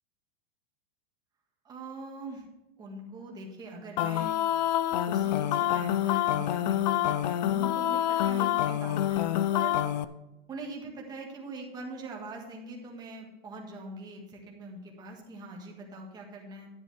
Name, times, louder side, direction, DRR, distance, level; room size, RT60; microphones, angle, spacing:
voice 1, 1.6-2.4 2.8-4.4 4.9-10.0 10.5-16.7, right 2 dB, 10° right, 0 dB, 1.6 m, -42 dB
sound 1, 4.0-10.0, left 12 dB, 45° left, 0.5 m, -27 dB
10.5 x 10.0 x 3.5 m, 1.0 s
supercardioid pair, 175°, 32 cm